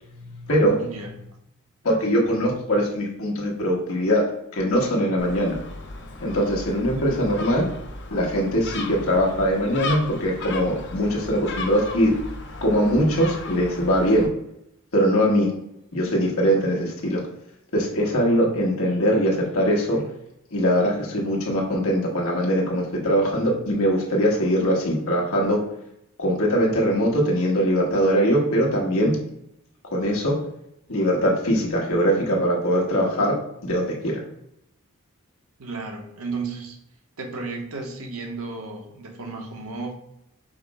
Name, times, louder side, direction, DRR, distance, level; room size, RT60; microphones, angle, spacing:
voice 1, 0.0-0.9 1.8-5.6 6.2-7.7 8.1-12.1 12.6-14.3 14.9-15.5 15.9-17.2 17.7-20.0 20.5-25.6 26.2-29.2 29.9-30.4 30.9-33.4 33.6-34.2, equal, 80° left, -2 dB, 1.2 m, -22 dB
voice 2, 0.8-1.1 35.6-36.8 37.2-39.9, right 3 dB, 75° right, 3 dB, 0.8 m, -33 dB
Gull seagull, 5.2-14.3, left 3 dB, 55° left, 0.6 m, -36 dB
4.9 x 2.0 x 4.6 m, 0.80 s
head